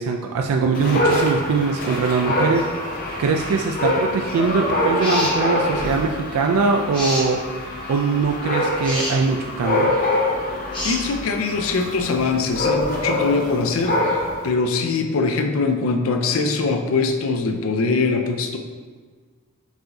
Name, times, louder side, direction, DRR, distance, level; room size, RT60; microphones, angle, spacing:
voice 1, 0.0-2.9 3.2-7.4 7.9-10.0, right 4 dB, 85° right, 2 dB, 0.3 m, -22 dB
Dog, 0.7-14.5, left 1 dB, 40° left, 0.8 m, -25 dB
Wind instrument woodwind instrument, 3.8-9.2, left 9 dB, 30° right, 0.6 m, -42 dB
sound 1, 5.0-5.4 6.9-7.3 8.8-9.2 10.7-11.0, left 1 dB, 20° left, 1.2 m, -27 dB
voice 2, 10.8-18.6, left 4 dB, 65° left, 5 dB, 0.5 m, -22 dB
4.8 x 2.6 x 3.7 m, 1.5 s
head